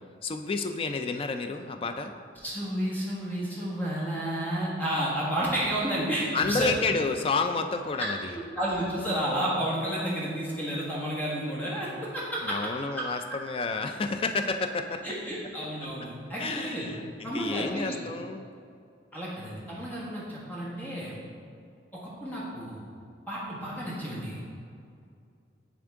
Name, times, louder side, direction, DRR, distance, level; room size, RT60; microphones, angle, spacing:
voice 1, 0.2-2.1 6.3-8.4 12.4-15.0 16.4-18.4, left 4 dB, 30° left, 7 dB, 0.3 m, -30 dB
voice 2, 2.4-6.7 8.0-8.1 8.6-12.5 12.9-13.0 13.3-13.4 15.0-16.9 17.2-18.0 19.1-21.1 21.9-22.8 23.3-24.6, right 1 dB, 10° left, -6 dB, 1.4 m, -31 dB
9.6 x 3.6 x 3.6 m, 2.4 s
head